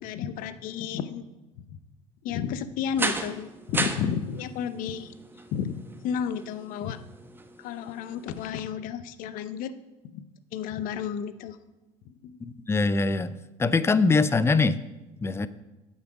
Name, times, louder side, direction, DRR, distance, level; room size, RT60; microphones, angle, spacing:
voice 1, 0.0-1.2 1.6-1.8 2.2-5.1 5.5-7.0 7.6-9.7 10.0-10.2 10.5-11.6 12.0-12.4, left 8 dB, 65° left, 12 dB, 0.7 m, -32 dB
sound 1, 3.0-8.5, right 2 dB, 15° right, 0.9 m, -35 dB
voice 2, 12.4-14.8 15.2-15.5, left 3 dB, 15° left, 15 dB, 0.5 m, -23 dB
8.3 x 7.0 x 5.0 m, 1.0 s
hypercardioid pair, 75°, 16 cm